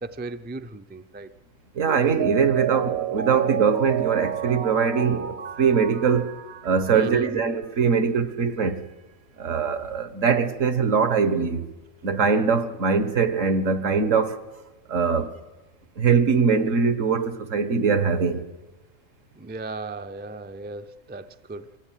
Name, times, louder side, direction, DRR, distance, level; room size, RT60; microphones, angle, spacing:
voice 1, 0.0-1.3 6.9-7.4 19.4-21.7, right 3 dB, 15° right, 0.4 m, -36 dB
voice 2, 1.7-6.4 6.6-8.8 9.4-11.6 12.0-14.4 14.9-15.3 16.0-18.4, right 5 dB, 75° right, 1.7 m, -22 dB
Mallet percussion, 1.9-7.4 7.7-7.8, right 9 dB, 60° right, 1.2 m, -31 dB
24.5 x 16.0 x 9.2 m
omnidirectional pair, 1.3 m